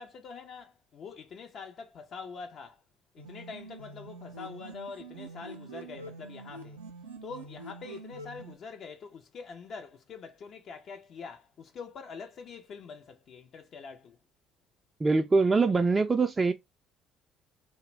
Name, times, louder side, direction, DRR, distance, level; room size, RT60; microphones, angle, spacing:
voice 1, 0.0-2.8 3.1-6.8 7.2-14.2, left 5 dB, 55° left, 0.4 m, -45 dB
sound 1, 3.2-8.6, right 3 dB, 85° right, 0.4 m, -45 dB
voice 2, 15.0-16.5, right 4 dB, 25° right, 0.3 m, -23 dB
2.5 x 2.0 x 3.0 m
hypercardioid pair, 55°, 0 cm